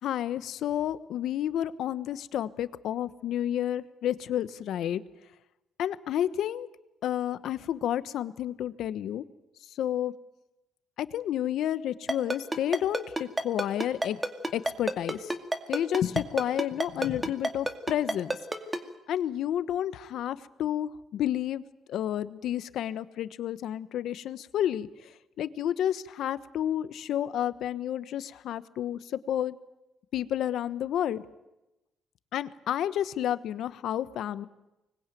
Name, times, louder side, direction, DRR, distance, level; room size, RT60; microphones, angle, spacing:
voice 1, 0.0-5.0 5.8-6.7 7.0-9.2 9.7-10.1 11.0-14.2 14.5-15.4 15.7-18.3 19.1-21.6 21.9-24.9 25.4-29.6 30.1-31.2 32.3-34.5, left 11 dB, 75° left, 14 dB, 1.1 m, -30 dB
Ringtone, 12.1-18.8, right 1 dB, 15° right, 2.3 m, -28 dB
24.5 x 21.0 x 9.2 m, 0.97 s
cardioid pair, 90°, 0 cm